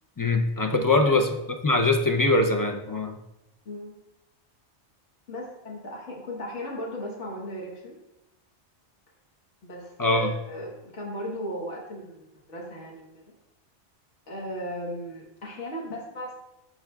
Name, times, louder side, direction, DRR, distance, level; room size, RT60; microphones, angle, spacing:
voice 1, 0.2-1.4 1.6-3.1 10.0-10.3, left 2 dB, 30° left, 3 dB, 0.3 m, -22 dB
voice 2, 3.6-4.0 5.3-8.0 9.6-13.1 14.3-16.4, equal, 80° left, -3 dB, 1.6 m, -36 dB
13.0 x 4.6 x 2.3 m, 0.90 s
omnidirectional pair, 1.2 m